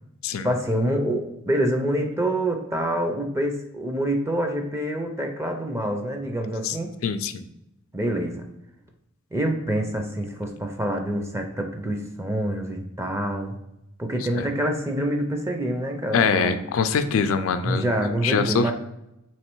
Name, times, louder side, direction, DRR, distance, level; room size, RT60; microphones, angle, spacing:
voice 1, 0.4-7.0 7.9-8.5 9.3-13.6 14.0-16.7 17.6-18.7, right 1 dB, 10° right, 4 dB, 0.4 m, -26 dB
voice 2, 7.0-7.4 14.3-14.5 16.1-17.8 18.2-18.7, left 5 dB, 70° left, 10 dB, 0.4 m, -23 dB
3.3 x 3.1 x 4.5 m, 0.88 s
head